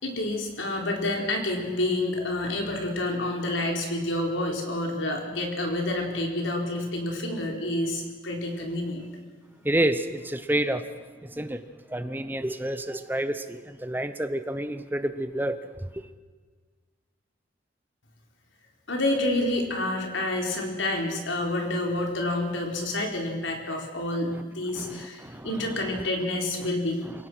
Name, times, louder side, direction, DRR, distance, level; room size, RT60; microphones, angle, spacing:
voice 1, 0.0-9.1 18.9-27.0, left 1 dB, 80° left, 4.2 m, -28 dB
voice 2, 9.6-10.9 11.2-11.6 11.9-16.1 24.3-24.4 24.7-26.1 27.0-27.1, right 1 dB, 10° right, 0.7 m, -29 dB
27.0 x 17.5 x 6.2 m
head